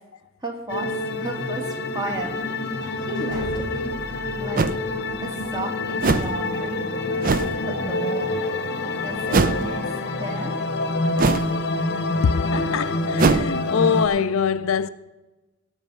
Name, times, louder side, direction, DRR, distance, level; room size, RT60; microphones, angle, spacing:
voice 1, 0.4-0.9 1.2-2.4 3.0-3.9 4.4-4.7 5.3-6.9 7.7-8.4 9.0-9.8 10.2-10.6, right 2 dB, 20° right, 2.0 m, -33 dB
sound 1, 0.7-14.1, left 2 dB, 50° left, 0.9 m, -27 dB
sound 2, 2.3-6.2, left 1 dB, 55° right, 4.0 m, -40 dB
sound 3, 3.6-3.7 4.6-4.8 6.0-6.4 7.2-7.6 9.3-9.7 11.2-11.6 13.2-13.5, right 4 dB, 40° right, 0.5 m, -20 dB
voice 2, 12.2-14.9, left 6 dB, 65° left, 0.4 m, -23 dB
18.0 x 6.2 x 5.4 m
head